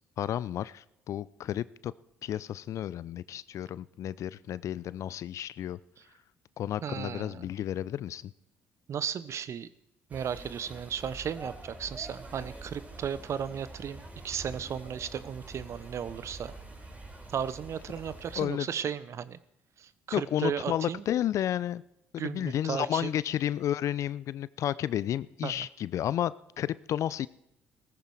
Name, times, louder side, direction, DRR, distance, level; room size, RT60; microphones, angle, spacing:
voice 1, 0.2-1.9 2.2-5.8 6.6-8.3 18.4-18.7 20.1-21.8 22.1-27.3, left 11 dB, 60° left, 0.5 m, -32 dB
voice 2, 6.8-7.4 8.9-9.7 10.1-16.5 17.3-19.4 19.8-21.0 22.2-23.1 25.4-25.7, right 8 dB, 50° right, 0.9 m, -35 dB
sound 1, 10.1-18.4, right 2 dB, 25° right, 5.3 m, -46 dB
17.0 x 14.5 x 4.7 m
hypercardioid pair, 50°, 6 cm